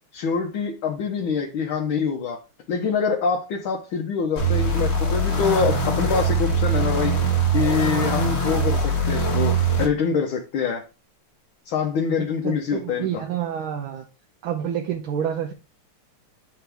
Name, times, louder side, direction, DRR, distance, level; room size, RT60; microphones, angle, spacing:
voice 1, 0.1-2.4 2.7-7.1 7.5-10.8 11.7-13.2, left 6 dB, 70° left, 0 dB, 1.7 m, -25 dB
sound 1, 4.4-9.9, right 3 dB, 35° left, 1.3 m, -22 dB
voice 2, 12.2-14.0 14.4-15.5, right 9 dB, 75° right, 3 dB, 1.6 m, -28 dB
7.5 x 5.8 x 3.4 m, 0.29 s
omnidirectional pair, 2.4 m